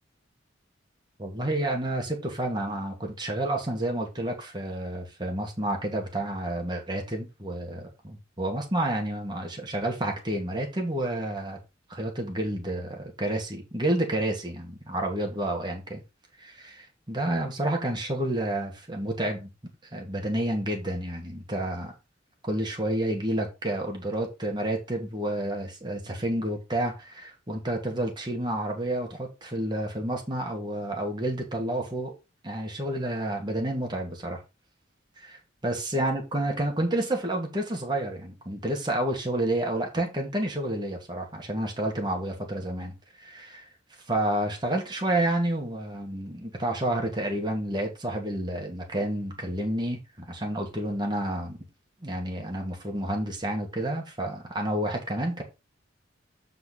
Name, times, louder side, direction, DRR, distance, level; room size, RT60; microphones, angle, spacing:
voice 1, 1.2-11.6 11.9-16.0 16.4-19.5 19.9-21.9 22.4-32.1 32.4-34.4 35.2-35.3 35.6-43.7 44.1-51.6 52.0-55.4, right 1 dB, 25° right, 1.9 m, -30 dB
8.2 x 4.3 x 4.1 m
head